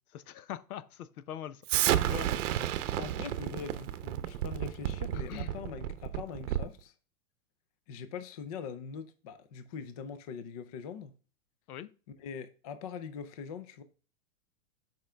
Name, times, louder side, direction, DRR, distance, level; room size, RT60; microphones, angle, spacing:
voice 1, 0.1-1.6 5.1-5.5 11.7-11.9, left 11 dB, 75° left, 0.8 m, -42 dB
Explosion, 1.7-6.8, right 12 dB, 55° right, 0.8 m, -31 dB
voice 2, 2.0-2.3 2.9-6.9 7.9-11.1 12.2-13.8, left 6 dB, 25° left, 0.4 m, -42 dB
8.0 x 5.0 x 3.3 m
hypercardioid pair, 145°, 45 cm